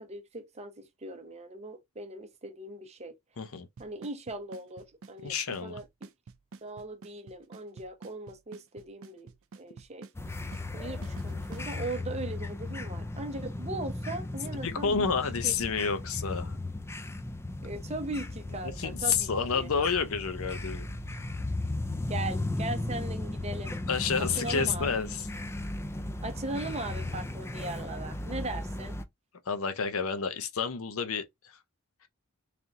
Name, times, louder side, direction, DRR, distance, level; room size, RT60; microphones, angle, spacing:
voice 1, 0.0-3.1 3.8-5.3 5.6-6.1 6.6-9.3 9.6-10.1 10.7-15.1 15.4-15.6 17.6-19.7 22.1-23.7 24.2-24.9 26.2-29.0, right 2 dB, 30° right, 0.7 m, -39 dB
voice 2, 3.4-3.7 5.2-5.8 14.6-16.6 18.6-20.9 23.9-25.3 29.5-31.6, left 6 dB, 65° left, 0.7 m, -30 dB
Drum kit / Snare drum / Bass drum, 3.8-11.7, right 4 dB, 65° right, 0.5 m, -48 dB
sound 1, 10.1-29.0, left 2 dB, 10° left, 0.4 m, -36 dB
3.4 x 2.7 x 3.6 m
head